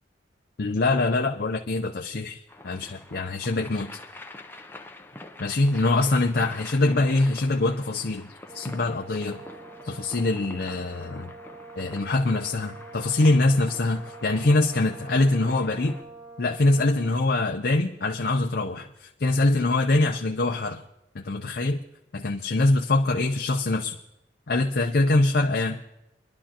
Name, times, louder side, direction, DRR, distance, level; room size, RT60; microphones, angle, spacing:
voice 1, 0.6-3.9 5.4-8.3 8.5-9.4 9.8-11.3 11.8-16.0 16.4-20.8 21.1-21.8 22.1-24.0 24.5-25.8, left 2 dB, 55° left, 2 dB, 0.6 m, -24 dB
sound 1, 2.5-16.0, left 2 dB, 10° left, 0.6 m, -45 dB
Brass instrument, 8.5-17.3, right 3 dB, 25° right, 2.9 m, -45 dB
25.5 x 11.0 x 2.9 m, 0.91 s
head